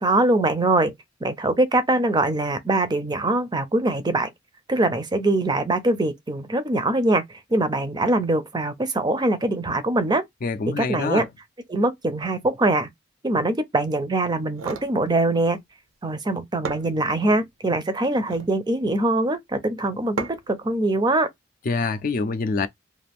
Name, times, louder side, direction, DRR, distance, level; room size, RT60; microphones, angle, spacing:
voice 1, 0.0-0.9 1.2-4.3 4.7-7.2 7.5-10.2 10.8-11.2 11.7-12.9 13.2-15.6 16.0-21.3, right 2 dB, 20° right, 0.5 m, -23 dB
voice 2, 10.4-11.3 21.7-22.7, left 4 dB, 45° left, 0.4 m, -25 dB
sound 1, 14.4-14.9 16.2-16.3 16.6-17.4 18.1-18.6 20.2-20.6, right 4 dB, 85° right, 0.6 m, -34 dB
2.5 x 2.4 x 3.4 m
head